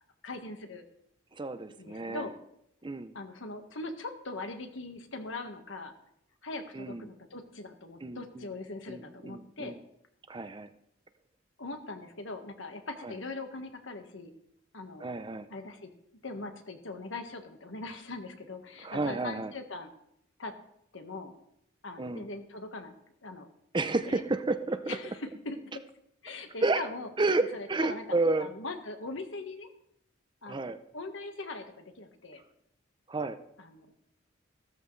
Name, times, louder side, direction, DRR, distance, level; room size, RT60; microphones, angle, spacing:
voice 1, 0.2-0.8 1.8-2.3 3.1-5.9 6.4-9.7 11.6-14.3 14.7-15.9 16.2-19.9 20.4-20.5 20.9-21.3 21.8-22.9 23.2-23.5 24.1-24.2 24.9-25.6 26.2-27.1 27.5-28.0 28.4-29.7 30.4-32.4 33.6-33.9, left 2 dB, 75° left, 6 dB, 1.5 m, -41 dB
voice 2, 1.3-2.3 2.8-3.1 6.7-7.1 8.0-8.5 8.9-9.8 10.3-10.7 13.0-13.1 15.0-15.5 18.8-19.5 22.0-22.3 23.7-25.0 26.6-26.8 27.2-28.5 30.5-30.8 33.1-33.4, right 2 dB, 25° right, 11 dB, 0.6 m, -31 dB
15.0 x 13.5 x 3.3 m, 0.76 s
head